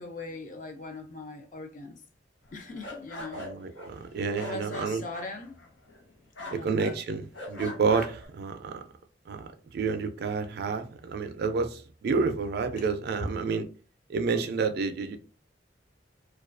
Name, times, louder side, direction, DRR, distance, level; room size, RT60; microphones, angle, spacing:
voice 1, 0.0-2.0 2.5-3.5 4.3-5.6 6.4-6.8 12.8-12.9 13.2-13.3, left 2 dB, 45° left, 0.4 m, -40 dB
sound 1, 2.5-6.1 6.4-7.0 7.3-8.3, left 1 dB, 90° left, 0.9 m, -41 dB
voice 2, 3.3-5.0 6.5-8.8 9.3-13.7 14.1-15.2, right 5 dB, 60° right, 0.3 m, -29 dB
2.3 x 2.2 x 2.4 m
head